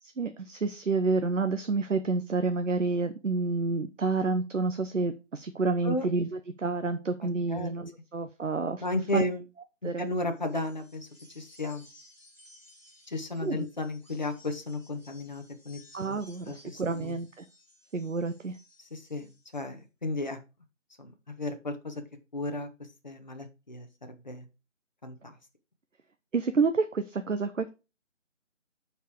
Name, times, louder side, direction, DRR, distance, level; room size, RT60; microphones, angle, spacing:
voice 1, 0.0-6.3 6.6-8.8 9.1-9.3 9.8-10.1 13.4-13.7 15.9-17.4 17.9-18.6 26.3-27.7, right 4 dB, 75° right, 8 dB, 0.9 m, -29 dB
voice 2, 8.8-9.4 9.8-11.1 11.3-11.8 13.1-16.2 16.5-17.2 18.8-20.4 21.0-22.0 22.3-22.7 23.0-24.5 25.0-25.4, left 2 dB, 35° left, 5 dB, 1.3 m, -34 dB
sound 1, 10.3-19.7, left 1 dB, 5° left, 1.5 m, -58 dB
8.0 x 4.6 x 4.9 m, 0.29 s
figure-of-eight pair, 175°, 38 cm